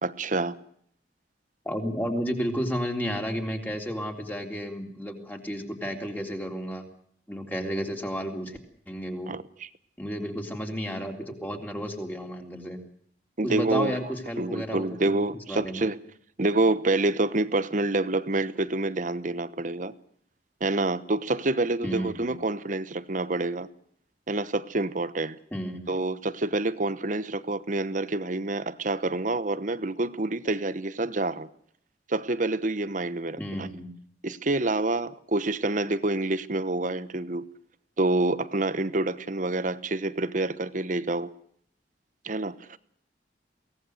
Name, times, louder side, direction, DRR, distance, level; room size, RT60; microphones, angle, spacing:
voice 1, 0.0-0.6 9.3-9.7 13.4-14.0 14.4-16.0 16.4-19.9 20.6-23.7 24.3-25.4 25.9-31.5 32.1-33.7 34.2-37.4 38.0-41.3 42.2-42.8, right 2 dB, 45° right, 1.1 m, -27 dB
voice 2, 1.7-6.8 7.3-8.6 8.9-9.3 10.0-12.8 13.4-15.2 15.5-15.9 21.8-22.3 25.5-25.9 33.4-33.9, equal, 10° left, 3.6 m, -32 dB
23.0 x 18.0 x 8.0 m
head